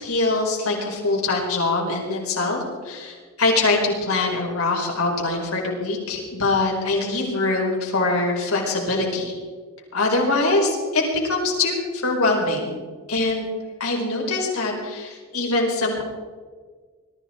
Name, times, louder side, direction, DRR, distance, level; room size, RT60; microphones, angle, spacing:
voice 1, 0.0-9.3 9.9-12.8 13.1-13.5 13.8-16.0, left 2 dB, 85° left, -1 dB, 4.8 m, -23 dB
21.5 x 14.0 x 4.5 m, 1.5 s
head